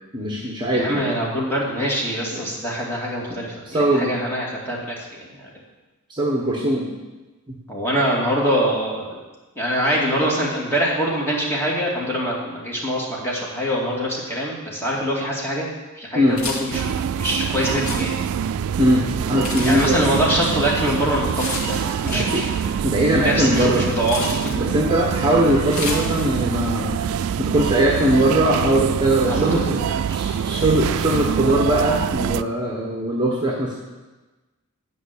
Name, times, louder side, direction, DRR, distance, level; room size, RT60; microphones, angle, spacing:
voice 1, 0.1-1.0 2.3-2.4 3.3-3.4 3.7-4.1 6.1-6.9 7.5-7.6 16.1-16.4 18.8-20.0 22.1-22.4 22.8-23.9 24.6-27.1 27.4-29.8 30.1-33.8, right 1 dB, 20° right, -2 dB, 1.2 m, -20 dB
voice 2, 0.7-5.5 7.7-9.2 9.6-15.7 16.0-18.3 19.6-22.5 23.2-24.4 29.3-29.6 29.9-30.2 30.6-30.7, equal, 10° left, -5 dB, 2.5 m, -24 dB
sound 1, 16.3-26.6, left 2 dB, 70° left, 2.2 m, -35 dB
sound 2, 16.7-32.4, right 8 dB, 65° right, 0.3 m, -25 dB
11.0 x 5.4 x 8.2 m, 1.2 s
head